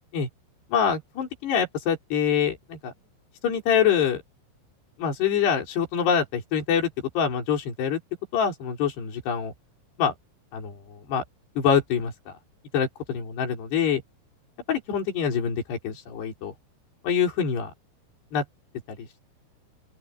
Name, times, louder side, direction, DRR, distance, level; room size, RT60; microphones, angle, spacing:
voice 1, 0.7-2.9 3.4-4.2 5.0-6.9 7.1-8.0 8.3-9.5 10.0-10.1 10.5-11.2 11.6-12.3 12.7-14.0 14.7-16.5 17.0-17.7 18.3-18.4 19.0-19.1, left 7 dB, 60° left, 6.8 m, -25 dB
open air
omnidirectional pair, 5.5 m